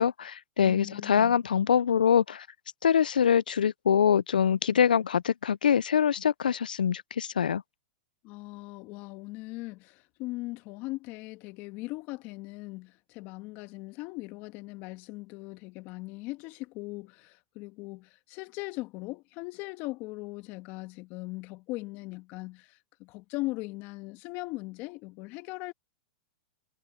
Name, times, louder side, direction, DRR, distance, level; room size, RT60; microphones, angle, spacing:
voice 1, 0.0-2.5 2.8-7.6, left 8 dB, 90° left, 0.4 m, -24 dB
voice 2, 0.6-1.4 8.2-25.7, left 22 dB, 45° left, 1.6 m, -39 dB
hypercardioid pair, 115°, 5 cm